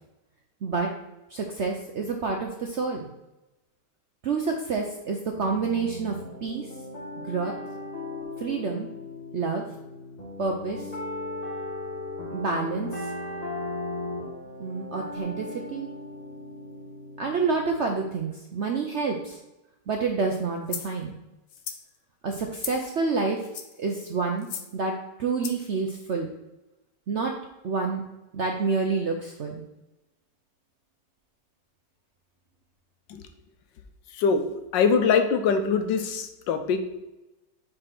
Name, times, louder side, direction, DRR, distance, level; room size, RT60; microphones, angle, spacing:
voice 1, 1.3-3.0 4.2-6.1 6.4-6.7 7.2-7.5 8.4-8.9 9.3-9.6 10.4-10.9 12.3-13.1 14.6-15.9 17.2-19.4 19.9-21.2 22.2-23.5 23.8-24.5 24.7-26.3 27.1-27.4 27.6-28.0 28.3-29.6, right 4 dB, 65° right, 2 dB, 0.6 m, -28 dB
sound 1, 5.3-18.0, left 2 dB, 20° left, 1.7 m, -37 dB
sound 2, 20.7-20.9 21.5-21.8 22.6-22.9 23.4-23.8 24.4-24.7 25.4-25.7, left 8 dB, 70° left, 0.8 m, -36 dB
voice 2, 34.7-36.8, left 5 dB, 90° left, 8 dB, 1.4 m, -23 dB
5.0 x 4.5 x 5.9 m, 0.98 s
omnidirectional pair, 1.9 m